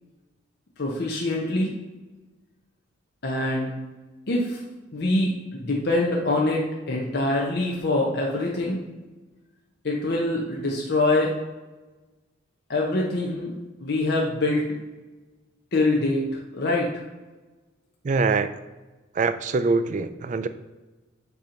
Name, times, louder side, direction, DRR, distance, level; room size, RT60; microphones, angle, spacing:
voice 1, 0.8-1.7 3.2-3.7 4.3-4.6 4.9-8.8 9.8-11.3 12.7-13.5 13.8-14.7 15.7-17.0, left 2 dB, 55° left, -2 dB, 0.8 m, -24 dB
voice 2, 18.0-18.5 19.2-20.5, right 4 dB, 40° right, 11 dB, 0.3 m, -23 dB
8.1 x 2.9 x 5.0 m, 1.2 s
head